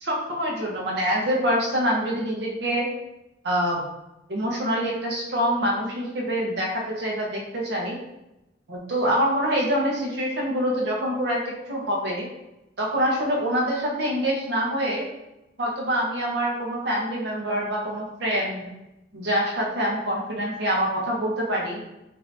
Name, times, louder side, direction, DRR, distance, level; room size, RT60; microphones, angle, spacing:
voice 1, 0.0-2.8 3.4-3.8 4.3-8.0 8.7-11.4 11.7-12.3 12.8-15.1 15.6-18.7 19.1-21.8, equal, 70° right, -2 dB, 0.8 m, -25 dB
2.7 x 2.6 x 3.3 m, 0.91 s
head